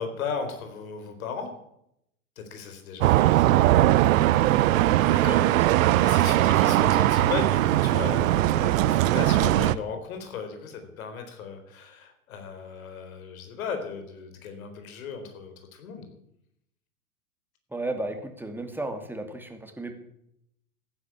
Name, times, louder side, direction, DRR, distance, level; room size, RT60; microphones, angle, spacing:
voice 1, 0.0-1.5 2.4-3.7 5.1-5.4 6.0-16.1, left 6 dB, 70° left, 7 dB, 4.2 m, -36 dB
sound 1, 3.0-9.7, right 15 dB, 60° right, 0.9 m, -20 dB
voice 2, 5.0-5.9 17.7-19.9, right 2 dB, 5° right, 5 dB, 2.6 m, -35 dB
15.0 x 9.8 x 8.5 m, 0.79 s
hypercardioid pair, 100°, 44 cm